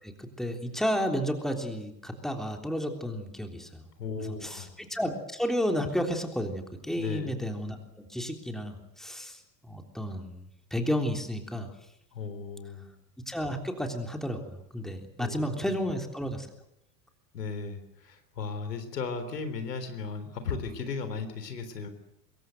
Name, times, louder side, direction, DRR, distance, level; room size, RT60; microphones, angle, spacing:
voice 1, 0.0-3.8 4.4-10.4 10.7-11.7 13.3-16.5, equal, ahead, 4 dB, 3.4 m, -32 dB
voice 2, 4.0-4.7 7.0-7.3 12.1-12.9 15.2-15.8 17.3-21.9, left 5 dB, 70° left, 9 dB, 3.8 m, -36 dB
25.0 x 22.5 x 7.9 m, 0.84 s
figure-of-eight pair, 80°, 50 cm